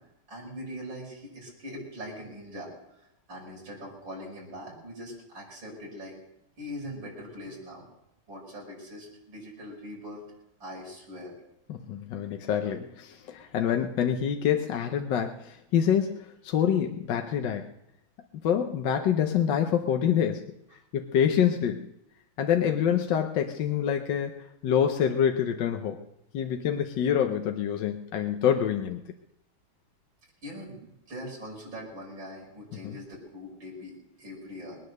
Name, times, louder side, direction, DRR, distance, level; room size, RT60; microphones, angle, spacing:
voice 1, 0.3-2.7 3.3-6.2 6.6-7.9 8.3-10.2 10.6-11.3 30.4-34.8, equal, 65° right, -4 dB, 6.1 m, -41 dB
voice 2, 11.7-17.7 18.4-20.5 20.9-21.9 22.4-24.4 24.6-26.0 26.3-29.0 32.8-33.0, left 9 dB, 65° left, 4 dB, 1.4 m, -26 dB
21.0 x 9.6 x 6.6 m, 0.83 s
omnidirectional pair, 2.3 m